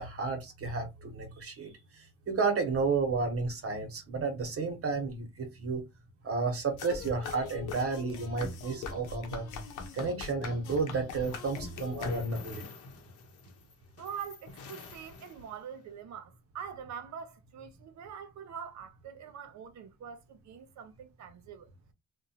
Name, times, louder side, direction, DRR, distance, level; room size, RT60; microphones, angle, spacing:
voice 1, 0.0-5.9 6.2-9.5 9.9-12.7, right 4 dB, 50° right, 0.9 m, -32 dB
sound 1, 6.8-12.6, left 4 dB, 90° left, 0.8 m, -40 dB
sound 2, 10.7-15.8, left 4 dB, 50° left, 0.8 m, -50 dB
voice 2, 14.0-21.7, right 7 dB, 70° right, 0.7 m, -44 dB
2.9 x 2.2 x 2.7 m
cardioid pair, 90°, 30 cm